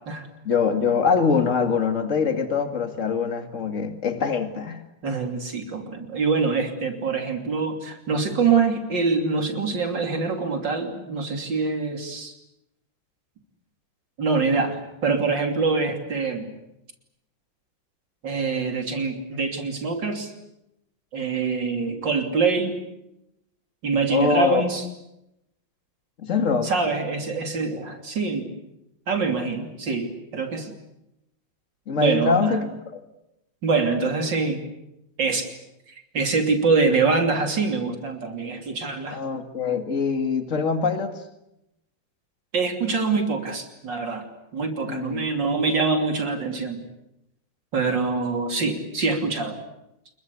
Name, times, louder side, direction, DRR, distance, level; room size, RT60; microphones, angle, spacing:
voice 1, 0.4-4.8 24.1-24.6 26.2-26.7 31.9-32.7 32.9-33.0 39.1-41.2 44.9-45.3, left 5 dB, 40° left, 7 dB, 2.5 m, -23 dB
voice 2, 5.0-12.3 14.2-16.5 18.2-20.3 21.1-22.8 23.8-24.9 26.6-28.5 29.1-30.7 32.0-32.6 33.6-34.6 35.2-35.5 35.9-39.2 42.5-46.8 47.7-49.6, right 4 dB, 65° right, 4 dB, 3.7 m, -25 dB
27.0 x 22.5 x 8.4 m, 0.86 s
omnidirectional pair, 2.1 m